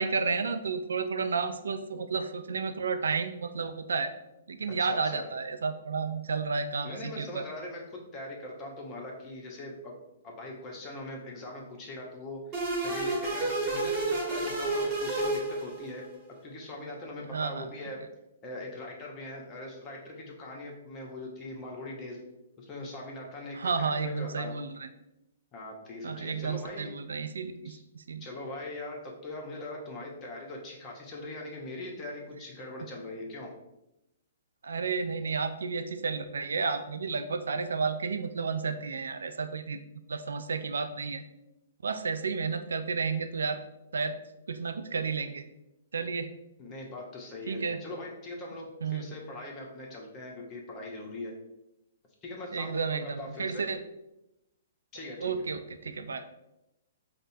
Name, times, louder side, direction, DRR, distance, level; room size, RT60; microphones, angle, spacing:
voice 1, 0.0-4.1 4.5-7.4 17.3-17.7 23.5-24.9 26.0-28.2 34.6-39.8 40.1-41.2 41.8-43.6 43.9-44.1 44.5-45.4 45.9-46.3 47.5-47.8 48.8-49.0 52.5-53.8 55.2-56.2, right 5 dB, 80° right, 9 dB, 0.3 m, -32 dB
voice 2, 4.8-5.3 6.8-9.9 10.2-12.5 12.8-16.0 16.4-18.0 18.4-22.2 22.6-24.6 25.5-26.9 27.6-27.8 28.2-33.5 46.6-51.3 52.2-53.7 54.9-55.3, left 2 dB, 25° left, -1 dB, 0.9 m, -41 dB
sound 1, 12.5-16.1, right 2 dB, 30° right, 1.2 m, -30 dB
5.2 x 2.2 x 2.6 m, 0.92 s
hypercardioid pair, 130°, 0 cm